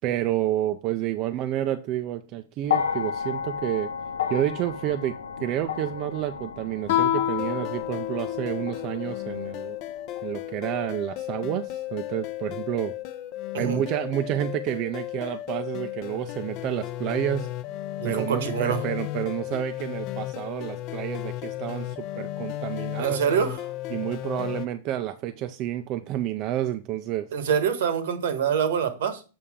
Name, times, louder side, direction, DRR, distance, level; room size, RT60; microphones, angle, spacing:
voice 1, 0.0-3.9 4.3-9.8 10.2-12.9 13.6-17.5 18.0-23.2 23.9-27.3, right 12 dB, 35° right, 0.5 m, -29 dB
sound 1, 2.6-11.0 12.0-12.1, left 7 dB, 90° left, 0.8 m, -33 dB
Guitar, 6.9-9.3, left 11 dB, 65° left, 1.1 m, -28 dB
sound 2, 7.4-24.7, left 14 dB, 40° left, 0.6 m, -34 dB
voice 2, 18.0-18.8 23.0-23.6 27.3-29.2, right 7 dB, 75° right, 1.3 m, -25 dB
7.0 x 5.5 x 3.6 m
supercardioid pair, 145°, 0 cm